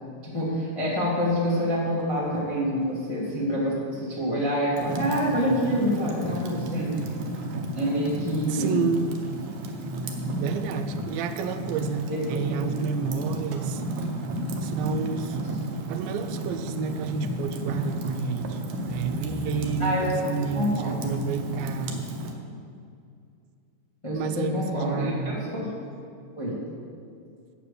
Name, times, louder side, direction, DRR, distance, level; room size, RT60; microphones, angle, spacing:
voice 1, 0.2-7.0 7.7-8.8 12.1-13.1 19.8-20.1 20.5-21.1 24.0-25.8 26.4-26.6, equal, 35° left, -6 dB, 0.4 m, -27 dB
Fire, 4.8-22.3, right 1 dB, 70° right, 2.0 m, -33 dB
voice 2, 8.5-9.2 10.3-13.8 14.6-15.4 15.9-18.6 18.9-22.0 24.1-25.4, right 6 dB, 85° right, 9 dB, 2.4 m, -30 dB
8.6 x 7.1 x 6.7 m, 2.4 s
omnidirectional pair, 4.1 m